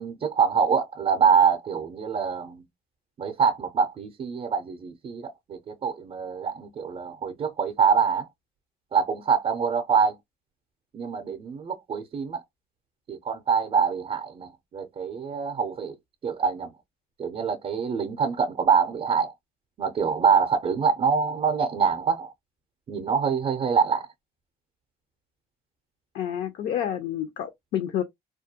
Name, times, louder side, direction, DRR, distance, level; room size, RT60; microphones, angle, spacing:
voice 1, 0.0-2.6 3.2-8.3 8.9-10.2 10.9-12.4 13.1-15.9 16.2-16.7 17.2-19.3 19.8-22.3 22.9-24.1, right 6 dB, 35° right, 0.5 m, -25 dB
voice 2, 26.1-28.0, left 10 dB, 65° left, 0.5 m, -29 dB
2.3 x 2.1 x 2.7 m
cardioid pair, 110°, 17 cm